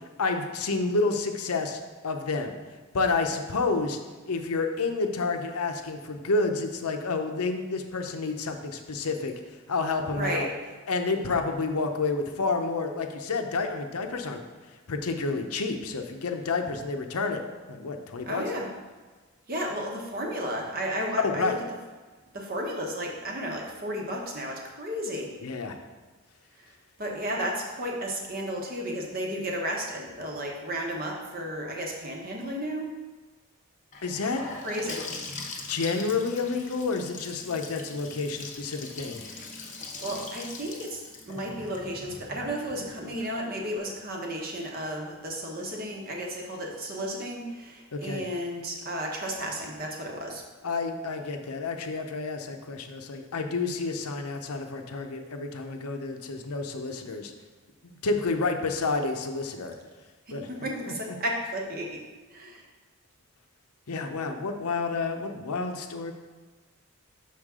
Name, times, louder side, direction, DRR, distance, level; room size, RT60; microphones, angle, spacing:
voice 1, 0.2-2.6 2.9-4.0 4.2-9.3 9.7-10.5 10.9-14.4 14.9-17.4 17.7-18.4 21.2-21.6 25.4-25.8 34.0-34.4 35.7-39.2 47.9-48.2 50.6-57.3 57.8-59.7 60.3-60.5 63.9-66.1, left 3 dB, 85° left, 5 dB, 0.7 m, -29 dB
voice 2, 10.1-10.5 18.3-18.7 19.5-21.5 22.3-25.3 27.0-32.9 34.6-35.1 40.0-41.0 41.3-50.4 60.3-62.0 62.3-62.6, equal, 40° right, 0 dB, 1.0 m, -33 dB
Gurgling / Sink (filling or washing) / Bathtub (filling or washing), 33.9-43.7, left 3 dB, 35° left, 0.8 m, -42 dB
6.5 x 5.8 x 3.7 m, 1.4 s
head